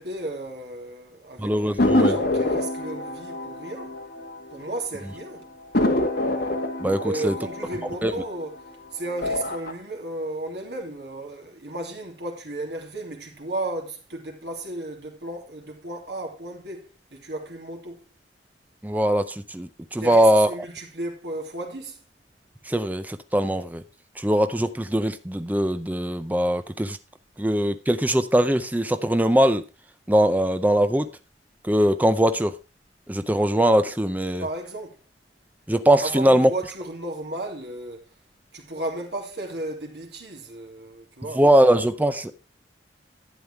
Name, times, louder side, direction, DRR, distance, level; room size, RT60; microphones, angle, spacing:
voice 1, 0.0-4.0 4.5-5.5 7.0-18.0 20.0-22.0 34.4-35.0 36.0-38.1 38.5-41.4, right 2 dB, 65° right, 2.7 m, -34 dB
voice 2, 1.4-2.1 6.8-7.3 8.0-8.1 18.8-20.5 22.7-23.8 24.2-27.0 27.4-29.6 30.1-31.1 31.6-32.5 33.1-34.5 35.7-36.5 41.4-42.3, right 1 dB, 10° right, 0.5 m, -21 dB
sound 1, 1.8-4.8 5.1-5.2 5.7-8.7 9.1-9.7, left 1 dB, 60° left, 2.0 m, -25 dB
11.5 x 9.3 x 3.4 m
head